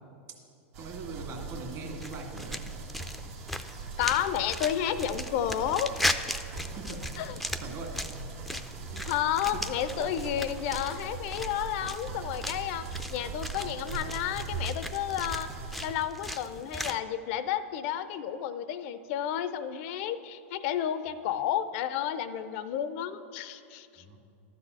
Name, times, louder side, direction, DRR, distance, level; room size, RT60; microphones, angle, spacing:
sound 1, 0.7-16.0, right 4 dB, 65° right, 1.1 m, -40 dB
voice 1, 0.8-2.6 6.8-7.0 7.6-7.9 8.9-9.1 9.5-9.6 24.0-24.2, right 3 dB, 45° right, 1 dB, 2.0 m, -41 dB
sound 2, 2.0-17.0, left 1 dB, ahead, 0.4 m, -38 dB
voice 2, 4.0-6.2 7.2-7.4 8.5-8.6 9.0-15.5 15.8-24.0, left 10 dB, 60° left, 13 dB, 0.5 m, -31 dB
12.0 x 4.1 x 8.0 m, 2.5 s
hypercardioid pair, 115°, 7 cm